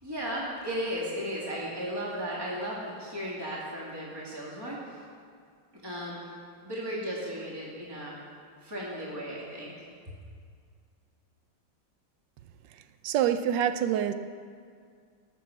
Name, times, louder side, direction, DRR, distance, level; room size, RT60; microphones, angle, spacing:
voice 1, 0.0-5.0 5.8-6.3 6.6-8.2 8.6-9.9, equal, 10° right, -6 dB, 2.5 m, -35 dB
voice 2, 13.0-14.1, right 10 dB, 70° right, 10 dB, 1.3 m, -26 dB
18.5 x 7.1 x 7.3 m, 2.2 s
omnidirectional pair, 2.2 m